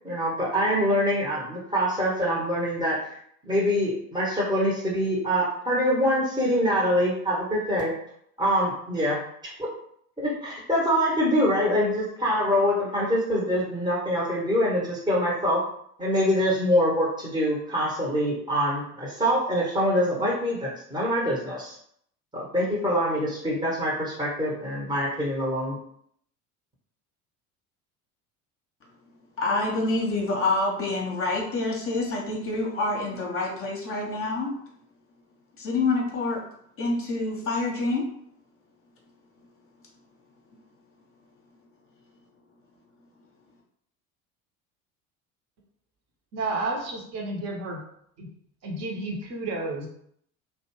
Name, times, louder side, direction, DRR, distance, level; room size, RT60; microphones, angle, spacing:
voice 1, 0.0-3.0 3.4-7.9 8.4-9.7 10.2-15.6 16.0-21.8 22.3-25.8, equal, 10° right, -5 dB, 0.8 m, -25 dB
voice 2, 29.4-34.5 35.6-36.4 36.8-38.0, left 2 dB, 30° left, -1 dB, 0.8 m, -27 dB
voice 3, 46.3-47.8 48.2-48.3 48.6-49.9, right 2 dB, 35° right, 0 dB, 0.9 m, -31 dB
2.6 x 2.2 x 2.9 m, 0.69 s
figure-of-eight pair, 65°, 44 cm